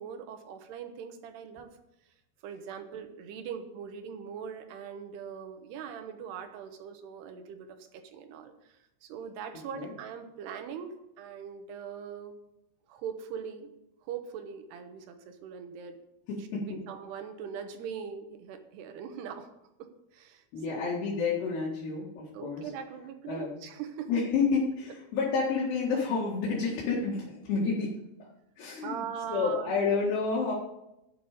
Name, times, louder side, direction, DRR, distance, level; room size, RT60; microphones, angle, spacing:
voice 1, 0.0-1.7 2.4-12.3 12.9-13.7 14.0-16.0 16.6-19.5 19.8-20.8 22.3-24.1 28.8-29.8, right 7 dB, 75° right, 7 dB, 3.2 m, -41 dB
voice 2, 16.3-16.8 20.5-22.7 23.3-23.7 24.1-27.9 28.6-29.0 29.3-30.5, left 4 dB, 75° left, -4 dB, 4.0 m, -30 dB
12.5 x 8.8 x 5.0 m, 0.89 s
omnidirectional pair, 4.8 m